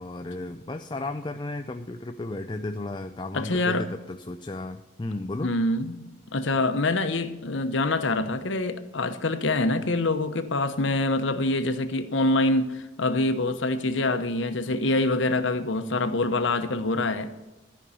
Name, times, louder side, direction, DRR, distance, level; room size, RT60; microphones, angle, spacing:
voice 1, 0.0-5.5, left 2 dB, 25° left, 0.4 m, -34 dB
voice 2, 3.3-3.9 5.4-6.1 6.3-17.3, left 2 dB, 75° left, 0.9 m, -25 dB
13.0 x 5.4 x 8.4 m
head